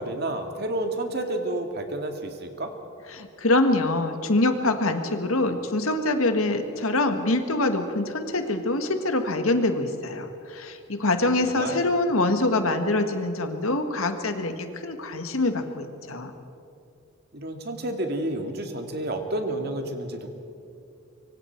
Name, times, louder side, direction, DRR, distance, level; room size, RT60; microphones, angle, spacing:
voice 1, 0.0-2.7 11.5-11.9 17.3-20.3, right 1 dB, 50° right, 4 dB, 2.0 m, -30 dB
voice 2, 3.1-16.3, left 2 dB, 80° left, 6 dB, 1.7 m, -25 dB
25.0 x 24.0 x 4.6 m, 2.7 s
head